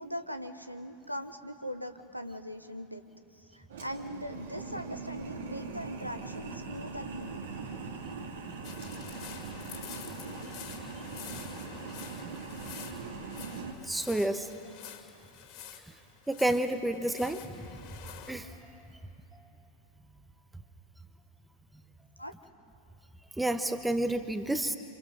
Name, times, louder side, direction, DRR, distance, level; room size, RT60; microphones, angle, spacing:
voice 1, 0.0-3.0 3.5-7.6 22.2-22.3, equal, 90° right, 8 dB, 1.3 m, -40 dB
sound 1, 3.7-13.7, right 4 dB, 65° right, 2.9 m, -41 dB
sound 2, 8.6-18.3, left 9 dB, 40° left, 2.8 m, -47 dB
voice 2, 13.9-14.5 16.3-17.4 18.3-18.5 23.4-24.8, right 1 dB, 5° right, 9 dB, 1.3 m, -29 dB
27.5 x 27.0 x 6.3 m, 2.7 s
figure-of-eight pair, 90°, 0 cm